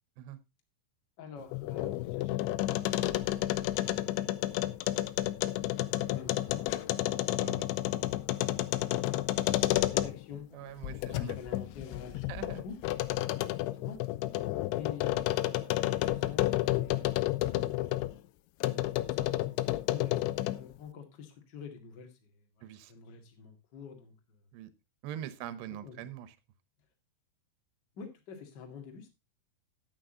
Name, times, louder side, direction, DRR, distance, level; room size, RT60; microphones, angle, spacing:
voice 1, 1.2-5.8 6.1-7.2 9.6-10.5 11.1-12.8 13.4-14.0 14.7-18.0 19.0-19.4 19.9-24.4 25.4-25.5 25.8-26.1 27.9-29.1, left 6 dB, 45° left, 4 dB, 1.4 m, -49 dB
sound 1, 1.4-10.4 10.8-18.1 18.6-20.7, left 16 dB, 80° left, 2.9 m, -31 dB
voice 2, 10.5-11.4 12.3-12.6 22.6-22.9 24.5-24.7 25.0-26.3, right 11 dB, 75° right, 14 dB, 2.9 m, -43 dB
10.5 x 8.9 x 3.8 m, 0.24 s
omnidirectional pair, 5.4 m